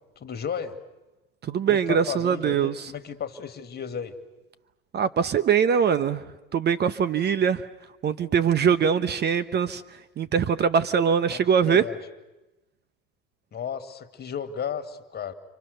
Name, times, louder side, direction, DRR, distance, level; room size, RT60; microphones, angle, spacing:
voice 1, 0.2-0.8 1.7-4.1 11.3-12.0 13.5-15.3, left 7 dB, 35° left, 10 dB, 2.3 m, -34 dB
voice 2, 1.4-2.7 4.9-6.2 6.5-7.6 8.0-9.8 10.2-11.8, right 7 dB, 35° right, 14 dB, 1.0 m, -22 dB
29.5 x 25.5 x 6.8 m, 1.1 s
hypercardioid pair, 90°, 29 cm